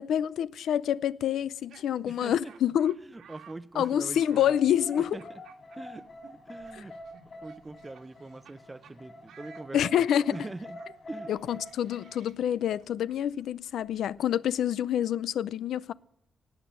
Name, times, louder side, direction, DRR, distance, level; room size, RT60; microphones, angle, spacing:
voice 1, 0.0-2.9 3.7-5.2 9.7-10.4 11.3-15.9, left 10 dB, 90° left, 0.5 m, -27 dB
Laughter, 1.4-8.6 8.8-9.0 9.3-15.0, right 7 dB, 90° right, 2.0 m, -57 dB
voice 2, 2.0-2.5 3.0-4.6 5.1-5.2 5.7-6.1 6.5-6.9 7.4-10.8 11.1-11.6, right 2 dB, 15° right, 0.7 m, -43 dB
sound 1, 4.5-12.3, left 1 dB, 35° left, 4.6 m, -46 dB
18.0 x 8.9 x 7.6 m
wide cardioid pair, 135°, 0 cm